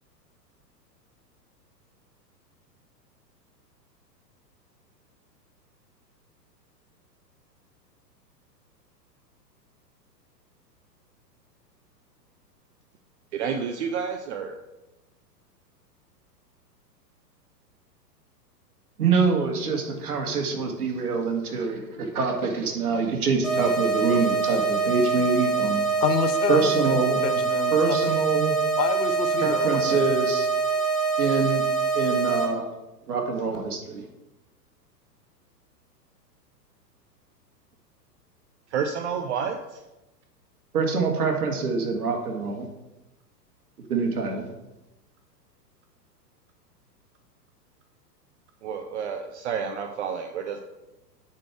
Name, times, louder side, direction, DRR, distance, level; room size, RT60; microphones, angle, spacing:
voice 1, 13.3-14.6 38.7-39.8 48.6-50.6, right 6 dB, 45° right, 6 dB, 0.7 m, -30 dB
voice 2, 19.0-25.8 26.5-27.2 27.7-28.6 29.4-30.5 31.2-31.6 31.9-32.7 33.1-34.1 40.7-42.7 43.9-44.5, right 4 dB, 60° right, 3 dB, 2.0 m, -25 dB
sound 1, 23.4-32.4, right 5 dB, ahead, 0.4 m, -25 dB
voice 3, 26.0-28.0 28.8-30.0, left 6 dB, 70° left, 10 dB, 0.9 m, -28 dB
9.8 x 4.6 x 4.8 m, 1.0 s
figure-of-eight pair, 105°, 50 cm